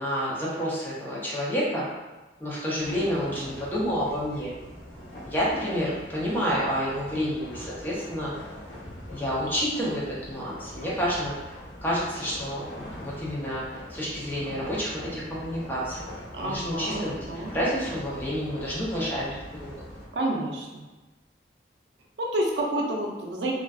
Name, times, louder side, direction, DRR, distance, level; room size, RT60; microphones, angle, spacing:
voice 1, 0.0-1.9 2.4-4.5 5.3-8.3 9.1-11.5 11.8-16.0 16.4-19.7, equal, 10° left, -7 dB, 0.5 m, -29 dB
sound 1, 2.8-20.1, equal, 65° left, 1.0 m, -42 dB
voice 2, 16.3-17.5 20.1-20.9 22.2-23.5, right 1 dB, 75° right, -1 dB, 0.5 m, -29 dB
2.5 x 2.3 x 2.3 m, 1.2 s
head